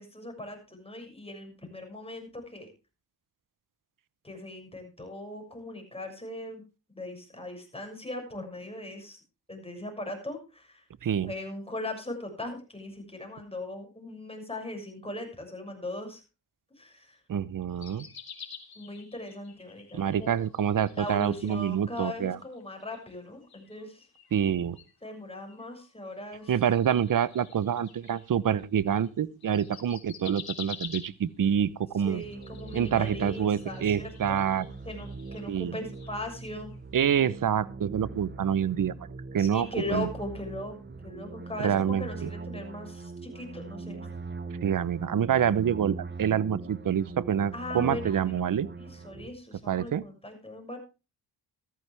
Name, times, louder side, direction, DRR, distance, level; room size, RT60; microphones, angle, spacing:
voice 1, 0.0-2.7 4.2-6.6 6.9-9.2 9.5-10.8 11.2-16.2 16.8-17.2 18.7-20.4 21.0-24.1 25.0-26.5 32.0-34.5 34.8-36.7 39.4-40.7 41.0-44.2 47.5-48.4 48.8-50.8, left 1 dB, 15° left, 6.5 m, -39 dB
voice 2, 11.0-11.3 17.3-18.1 19.9-22.4 24.3-24.8 26.5-32.2 32.7-34.7 35.5-35.7 36.9-39.0 39.3-40.1 41.6-42.3 44.6-48.7 49.7-50.0, right 8 dB, 50° right, 0.9 m, -27 dB
sound 1, 17.7-21.9 22.2-29.1 29.4-31.5 32.1-36.8 37.0-37.2, left 7 dB, 55° left, 3.2 m, -48 dB
sound 2, 32.2-49.3, right 4 dB, 25° right, 1.2 m, -41 dB
14.0 x 14.0 x 3.4 m
cardioid pair, 75°, 43 cm